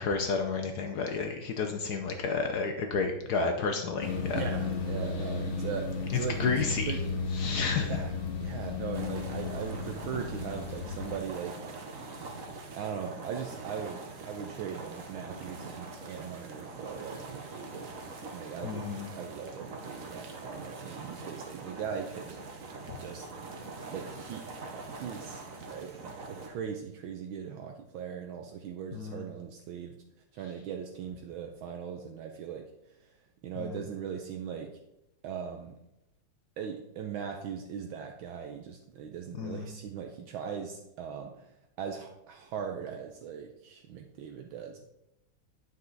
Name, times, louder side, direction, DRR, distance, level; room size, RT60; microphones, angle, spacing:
voice 1, 0.0-4.4 6.4-6.9 7.3-7.9 18.6-19.1 28.9-29.2 33.6-33.8 39.4-39.7, left 4 dB, 65° left, 5 dB, 1.0 m, -31 dB
sound 1, 4.0-11.2, left 4 dB, 40° left, 0.9 m, -34 dB
voice 2, 4.3-6.5 6.8-7.0 7.7-11.6 12.7-17.9 18.3-18.8 19.1-22.4 23.0-23.3 23.9-29.9 30.3-32.7 33.4-34.7 35.2-35.7 36.6-41.5 41.8-44.9, right 7 dB, 75° right, 3 dB, 1.4 m, -39 dB
sound 2, 8.9-26.5, right 3 dB, 50° right, 1.1 m, -43 dB
9.2 x 5.6 x 3.9 m, 0.87 s
omnidirectional pair, 2.4 m